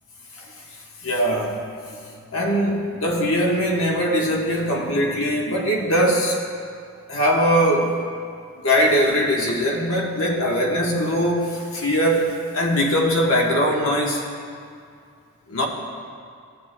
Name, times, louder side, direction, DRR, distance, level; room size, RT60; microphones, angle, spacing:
voice 1, 1.0-1.6 1.9-6.4 7.1-8.0 8.6-14.3 15.5-15.7, equal, 65° left, -1 dB, 1.2 m, -21 dB
15.0 x 7.1 x 2.2 m, 2.3 s
head